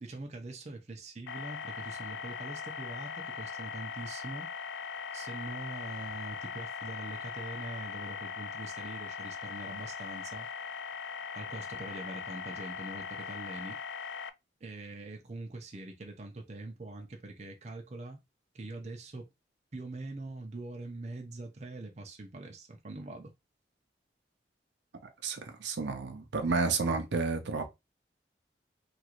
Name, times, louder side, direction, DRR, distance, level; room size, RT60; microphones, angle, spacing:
voice 1, 0.0-4.5 5.1-10.5 11.3-13.8 14.6-18.2 18.5-19.3 19.7-23.3, right 2 dB, 40° right, 0.5 m, -43 dB
sound 1, 1.3-14.3, left 6 dB, 75° left, 0.3 m, -40 dB
voice 2, 25.2-27.7, right 4 dB, 85° right, 0.6 m, -31 dB
3.0 x 2.4 x 2.9 m
head